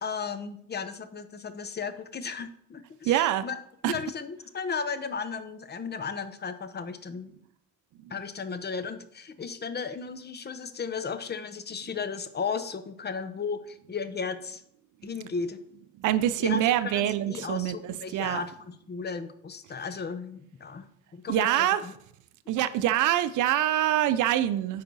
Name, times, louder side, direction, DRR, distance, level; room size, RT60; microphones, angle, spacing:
voice 1, 0.0-3.6 3.9-7.3 8.1-14.6 15.0-15.6 16.4-21.9, left 5 dB, 35° left, 11 dB, 0.8 m, -35 dB
voice 2, 3.1-3.4 3.8-3.9 16.0-18.4 21.3-21.8 22.5-24.8, right 13 dB, 80° right, 12 dB, 0.5 m, -25 dB
9.3 x 4.8 x 4.1 m, 0.69 s
cardioid pair, 90°, 30 cm